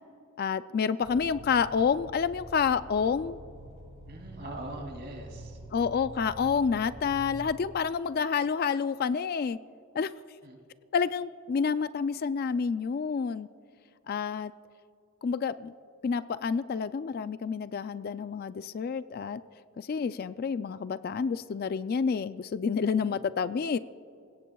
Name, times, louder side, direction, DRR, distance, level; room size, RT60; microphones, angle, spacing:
voice 1, 0.4-3.4 5.7-9.6 9.9-10.1 10.9-13.5 14.1-14.5 15.2-15.7 16.0-19.4 19.8-23.8, left 6 dB, 45° left, 13 dB, 0.3 m, -29 dB
sound 1, 1.0-7.6, right 1 dB, 25° right, 2.2 m, -46 dB
voice 2, 4.1-5.6 10.4-10.6 23.0-23.2, right 1 dB, 50° right, 1 dB, 2.9 m, -41 dB
28.0 x 17.0 x 2.3 m, 2.6 s
head